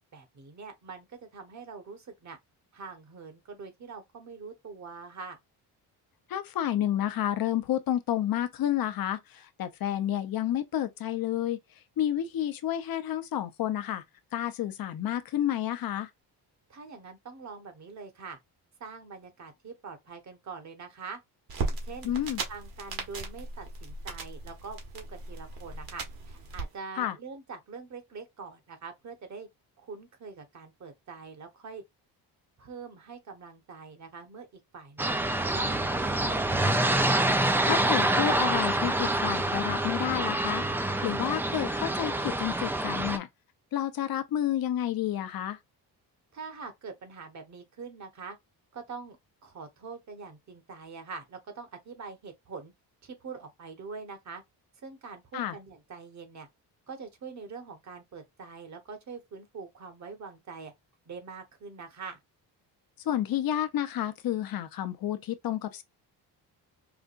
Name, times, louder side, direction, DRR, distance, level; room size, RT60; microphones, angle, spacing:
voice 1, 0.1-2.4 2.7-5.4 16.7-18.4 18.8-21.2 21.6-22.1 22.5-29.5 29.8-31.8 32.6-34.5 34.7-35.2 35.5-35.8 36.0-36.8 46.3-48.4 48.7-49.2 49.4-52.7 53.0-54.4 54.8-56.5 56.9-60.7 61.1-62.2, right 5 dB, 45° right, 1.2 m, -44 dB
voice 2, 6.3-11.6 12.0-14.0 14.3-16.1 22.0-22.4 27.0-27.2 37.7-43.3 43.7-45.6 55.3-55.6 63.1-65.8, left 11 dB, 60° left, 0.7 m, -30 dB
sound 1, 21.5-26.6, right 3 dB, 60° right, 1.5 m, -37 dB
sound 2, 35.0-43.2, right 1 dB, 5° right, 0.3 m, -27 dB
4.9 x 2.2 x 2.5 m
cardioid pair, 120°, 41 cm